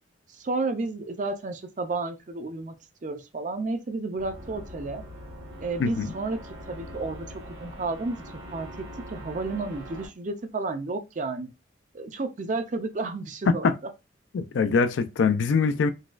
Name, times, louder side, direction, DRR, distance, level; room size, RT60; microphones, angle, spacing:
voice 1, 0.3-2.8 3.0-5.0 5.6-8.2 8.5-11.5 11.9-13.7, right 3 dB, 40° right, 0.4 m, -32 dB
sound 1, 4.2-10.1, equal, 80° right, 1.1 m, -42 dB
voice 2, 14.3-15.9, left 5 dB, 75° left, 0.4 m, -23 dB
4.0 x 2.3 x 2.4 m
head